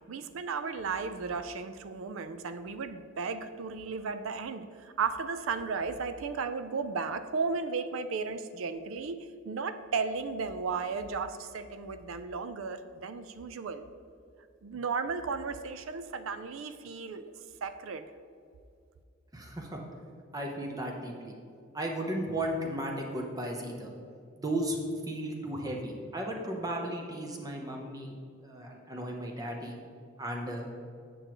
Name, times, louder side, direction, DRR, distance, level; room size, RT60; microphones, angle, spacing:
voice 1, 0.1-9.2 9.4-13.8 14.6-17.3 17.6-18.1, right 5 dB, 80° right, 11 dB, 0.4 m, -34 dB
voice 2, 19.3-19.8 20.3-21.3 21.7-23.9 24.4-24.8 25.1-28.1 28.4-29.8 30.2-30.7, right 1 dB, 20° right, 1 dB, 0.8 m, -35 dB
8.8 x 6.2 x 3.0 m, 2.4 s
head